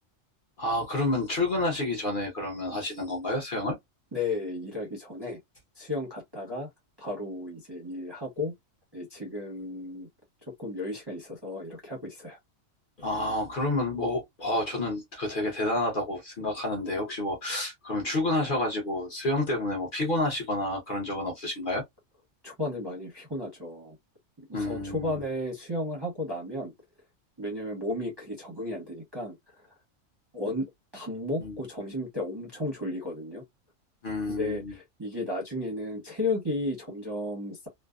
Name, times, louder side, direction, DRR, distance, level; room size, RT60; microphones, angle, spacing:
voice 1, 0.6-3.8 13.0-21.8 24.5-25.2 31.4-31.6 34.0-34.7, left 1 dB, 50° left, 0.8 m, -29 dB
voice 2, 4.1-5.4 5.8-6.7 7.0-8.5 8.9-10.1 10.6-12.4 22.4-24.0 24.5-26.7 27.4-29.4 30.3-33.4 34.3-37.7, left 2 dB, 25° right, 0.6 m, -34 dB
2.6 x 2.1 x 2.3 m
omnidirectional pair, 1.4 m